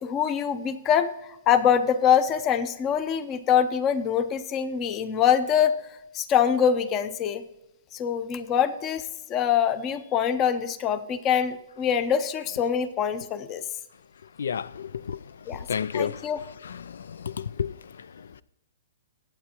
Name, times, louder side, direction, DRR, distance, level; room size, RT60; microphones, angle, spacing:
voice 1, 0.0-1.1 1.5-5.8 6.1-7.4 7.9-9.0 9.3-13.7 15.5-15.7 15.9-16.4, left 8 dB, 20° left, 0.6 m, -24 dB
voice 2, 14.4-15.2 15.7-16.2 17.2-17.7, left 7 dB, 85° left, 0.3 m, -29 dB
22.5 x 8.6 x 3.0 m
hypercardioid pair, 165°, 0 cm